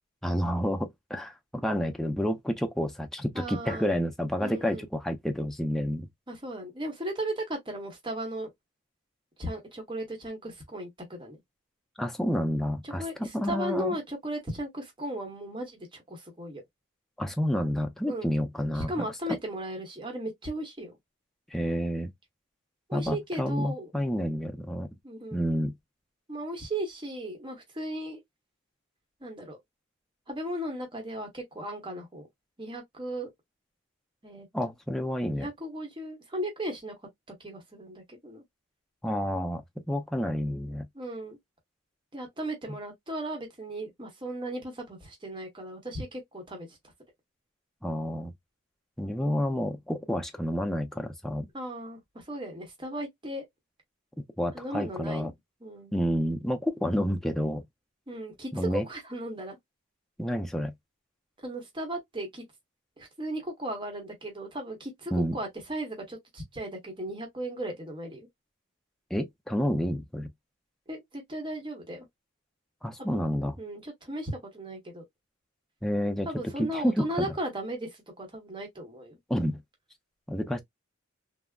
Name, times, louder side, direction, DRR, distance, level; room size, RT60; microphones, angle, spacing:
voice 1, 0.2-6.1 12.0-14.0 17.2-18.9 21.5-22.1 22.9-24.9 25.3-25.7 34.5-35.5 39.0-40.9 47.8-48.3 49.0-51.5 54.4-55.3 55.9-57.6 58.5-58.8 60.2-60.7 65.1-65.4 69.1-70.3 72.8-73.6 75.8-76.3 76.6-77.3 79.3-79.6 80.3-80.6, equal, ahead, 0.4 m, -29 dB
voice 2, 3.3-3.9 4.4-4.9 6.3-8.5 9.4-11.4 12.8-16.6 18.1-18.3 18.7-21.0 22.9-23.9 25.0-25.4 26.3-28.2 29.2-29.6 30.3-32.3 32.6-33.3 34.2-34.5 35.3-36.9 37.4-38.4 40.9-41.4 42.1-46.8 51.5-53.5 54.5-55.3 55.6-55.9 58.1-59.6 61.4-62.4 63.0-68.3 70.9-72.1 73.0-73.2 73.6-75.0 76.2-79.2, right 1 dB, 25° right, 0.9 m, -36 dB
3.4 x 2.0 x 2.2 m
head